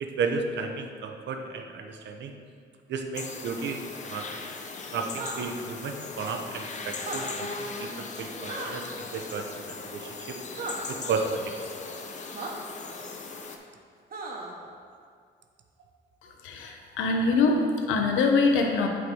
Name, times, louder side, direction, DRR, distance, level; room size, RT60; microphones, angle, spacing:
voice 1, 0.0-2.3 2.9-3.8 4.0-4.3 4.9-10.4 10.9-11.5, right 4 dB, 65° right, 5 dB, 0.7 m, -33 dB
sound 1, 3.1-13.6, left 4 dB, 35° left, 0.7 m, -38 dB
sound 2, 5.1-5.4 6.9-7.2 8.5-8.7 10.6-10.7 12.3-12.5 14.1-14.5, right 4 dB, 45° right, 1.1 m, -35 dB
voice 2, 16.4-18.9, left 3 dB, 90° left, 2 dB, 0.9 m, -23 dB
8.1 x 3.8 x 4.8 m, 2.2 s
cardioid pair, 90°, 20 cm